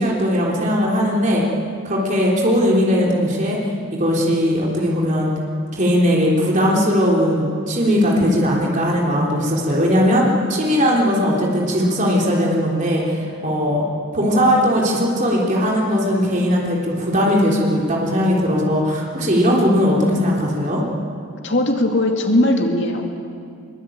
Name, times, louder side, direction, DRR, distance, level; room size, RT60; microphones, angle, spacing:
voice 1, 0.0-1.5 1.8-5.3 5.7-13.9 14.1-20.8, equal, 35° right, -3 dB, 3.6 m, -18 dB
voice 2, 21.4-23.2, left 1 dB, 55° left, 2 dB, 2.5 m, -19 dB
24.0 x 22.5 x 8.8 m, 2.3 s
head